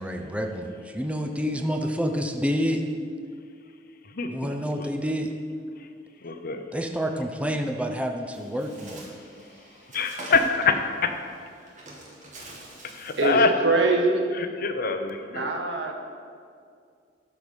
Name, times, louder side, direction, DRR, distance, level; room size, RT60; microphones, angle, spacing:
voice 1, 0.0-2.8 4.3-5.3 6.7-9.1, equal, 5° right, 4 dB, 0.6 m, -28 dB
voice 2, 6.2-6.6 9.9-11.1 12.9-13.5 14.6-15.5, left 4 dB, 50° left, 7 dB, 0.8 m, -24 dB
Bird, 8.3-13.4, right 2 dB, 45° right, 1.9 m, -45 dB
voice 3, 13.2-14.3 15.2-15.9, right 3 dB, 70° right, 2 dB, 1.3 m, -23 dB
12.5 x 5.3 x 6.3 m, 2.2 s
head